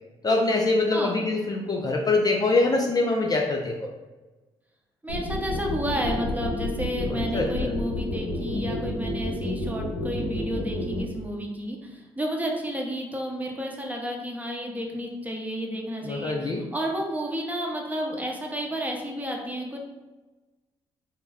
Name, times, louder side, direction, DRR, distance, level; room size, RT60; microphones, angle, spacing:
voice 1, 0.2-3.9 7.1-7.7 16.0-16.6, left 2 dB, 30° left, 0 dB, 0.4 m, -24 dB
voice 2, 5.0-19.8, equal, 10° right, 0 dB, 0.7 m, -31 dB
sound 1, 5.1-11.0, left 1 dB, 85° left, 0.7 m, -29 dB
2.2 x 2.1 x 3.4 m, 1.1 s
hypercardioid pair, 50°, 14 cm